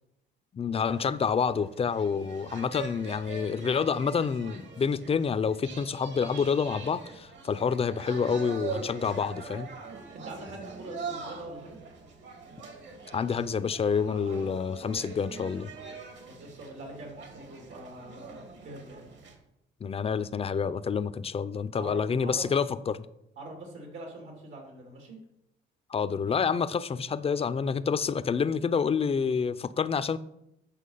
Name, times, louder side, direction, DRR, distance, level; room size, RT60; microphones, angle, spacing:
voice 1, 0.5-9.7 13.1-15.7 19.8-23.1 25.9-30.2, left 6 dB, 30° left, 0.5 m, -28 dB
sound 1, 0.8-19.4, right 4 dB, 65° right, 2.0 m, -43 dB
voice 2, 10.1-11.8 16.3-19.1 21.7-22.4 23.4-25.2, right 2 dB, 80° right, 2.8 m, -43 dB
8.4 x 5.9 x 5.6 m
cardioid pair, 90°, 20 cm